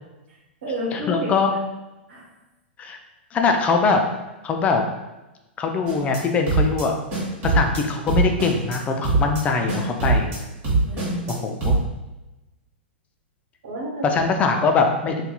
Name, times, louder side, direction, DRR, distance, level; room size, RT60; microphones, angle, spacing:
voice 1, 0.3-1.6 2.1-2.3 10.9-11.4 13.6-14.0, equal, 70° right, -3 dB, 0.9 m, -31 dB
voice 2, 0.9-1.5 2.8-3.0 3.3-4.0 4.4-4.8 5.6-6.9 7.4-10.3 11.3-11.8 14.1-15.3, left 4 dB, 25° left, 4 dB, 0.3 m, -22 dB
sound 1, 5.9-6.2 6.5-6.8 7.1-7.8 8.1-8.8 9.0-9.4 9.7-10.4 10.6-11.3 11.6-11.8, right 3 dB, 40° right, 1.3 m, -22 dB
2.7 x 2.4 x 2.2 m, 1.0 s
hypercardioid pair, 110°, 6 cm